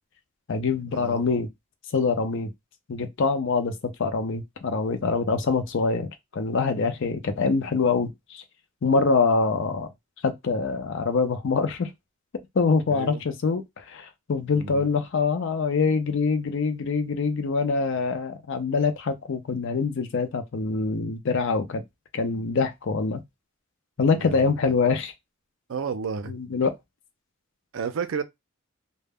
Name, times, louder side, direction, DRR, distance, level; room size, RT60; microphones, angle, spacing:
voice 1, 0.5-1.5 1.9-2.5 2.9-3.7 4.0-6.1 6.3-8.4 8.8-9.9 10.2-11.9 12.5-21.8 22.1-23.2 24.0-25.1 26.3-26.7, left 4 dB, 60° left, 0.5 m, -24 dB
voice 2, 12.9-13.2 14.5-14.8 24.2-24.7 25.7-26.3 27.7-28.2, right 5 dB, 70° right, 0.4 m, -32 dB
2.1 x 2.0 x 3.4 m
head